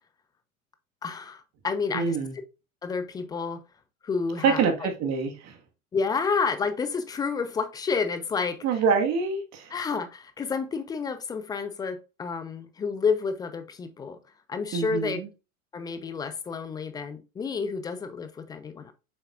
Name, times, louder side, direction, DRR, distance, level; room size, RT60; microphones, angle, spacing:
voice 1, 1.0-2.2 2.8-3.6 4.0-4.9 5.9-8.6 9.7-14.2 14.5-15.2 15.7-18.9, left 5 dB, 10° left, 0.4 m, -30 dB
voice 2, 1.9-2.3 4.4-5.6 8.6-9.7 14.7-15.3, right 5 dB, 40° right, 1.7 m, -25 dB
7.2 x 5.9 x 2.5 m
figure-of-eight pair, 80°, 42 cm